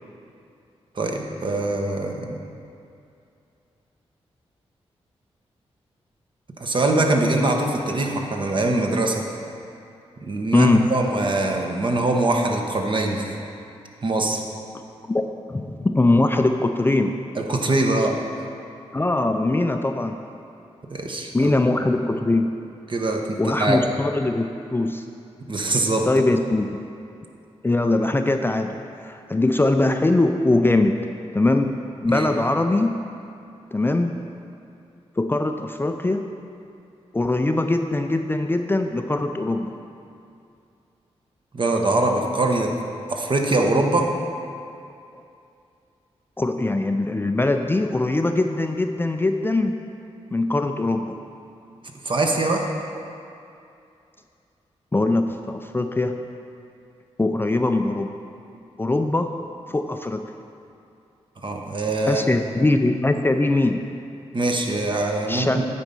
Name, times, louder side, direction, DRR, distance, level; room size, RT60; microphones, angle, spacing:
voice 1, 0.9-2.3 6.6-9.3 10.2-13.4 14.0-14.4 17.4-18.2 20.9-21.5 22.9-23.9 25.5-26.1 32.1-32.3 41.5-42.7 43.1-44.1 52.0-52.7 61.4-62.2 64.3-65.6, right 2 dB, 45° right, 2 dB, 1.0 m, -23 dB
voice 2, 10.5-10.9 15.1-17.2 18.9-20.2 21.3-22.5 23.4-25.0 26.1-26.7 27.6-28.8 29.0-31.1 31.3-33.0 33.7-34.1 35.2-36.3 37.1-39.7 45.1-45.2 46.4-49.8 50.3-51.2 54.9-56.2 57.2-58.1 58.8-59.3 59.7-60.2 62.1-63.9 65.3-65.6, left 2 dB, 20° left, 6 dB, 0.4 m, -21 dB
9.1 x 4.2 x 5.3 m, 2.6 s
cardioid pair, 55°, 11 cm